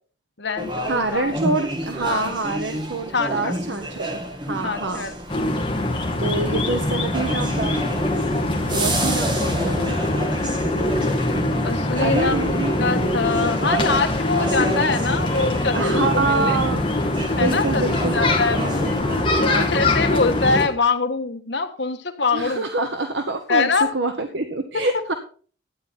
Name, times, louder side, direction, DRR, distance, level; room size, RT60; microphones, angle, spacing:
voice 1, 0.4-1.3 2.1-2.3 3.1-3.6 4.6-5.1 11.6-16.6 17.4-17.8 18.1-18.9 19.4-22.7 23.5-23.9, left 4 dB, 70° left, 6 dB, 1.4 m, -24 dB
sound 1, 0.6-19.0, right 1 dB, 25° right, 1.5 m, -30 dB
voice 2, 0.9-4.2 4.4-5.1 6.2-7.8 8.7-10.0 11.9-12.8 15.7-16.8 17.4-19.7 22.3-25.1, right 3 dB, 75° right, 6 dB, 1.1 m, -26 dB
sound 2, 5.3-20.7, left 2 dB, 25° left, 1.9 m, -23 dB
13.0 x 9.4 x 4.3 m, 0.42 s
head